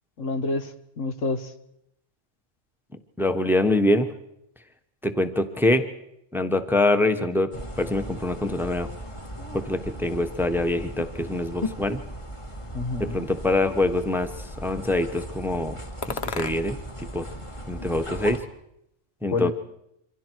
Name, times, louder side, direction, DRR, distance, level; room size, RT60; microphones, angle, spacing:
voice 1, 0.2-1.5 12.7-13.2 19.3-19.5, left 3 dB, 85° left, 9 dB, 1.6 m, -28 dB
voice 2, 3.2-4.1 5.0-5.8 6.3-7.5 7.8-8.9 9.5-12.0 13.0-15.8 16.1-16.8 17.1-17.3 17.7-18.4 19.2-19.5, left 2 dB, ahead, 8 dB, 1.0 m, -24 dB
sound 1, 7.5-18.4, equal, 25° left, 1.8 m, -37 dB
sound 2, 12.8-13.8 14.5-15.1 16.0-17.0 17.2-18.3, left 6 dB, 60° left, 1.2 m, -38 dB
27.5 x 25.0 x 4.6 m, 0.79 s
omnidirectional pair, 1.3 m